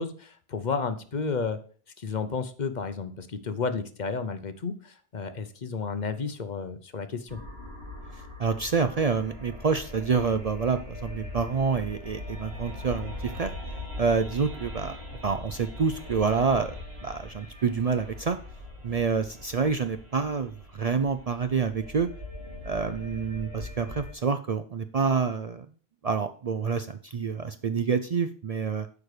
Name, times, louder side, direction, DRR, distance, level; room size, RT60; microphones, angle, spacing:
voice 1, 0.0-1.6 2.0-7.4, left 5 dB, 50° left, 10 dB, 0.9 m, -32 dB
sound 1, 7.3-24.1, left 2 dB, 85° right, 2.5 m, -41 dB
voice 2, 8.4-13.5 14.0-18.4 18.8-22.1 22.6-25.7 26.0-28.9, right 5 dB, 50° right, 10 dB, 0.5 m, -27 dB
8.6 x 4.9 x 6.6 m, 0.43 s
omnidirectional pair, 1.0 m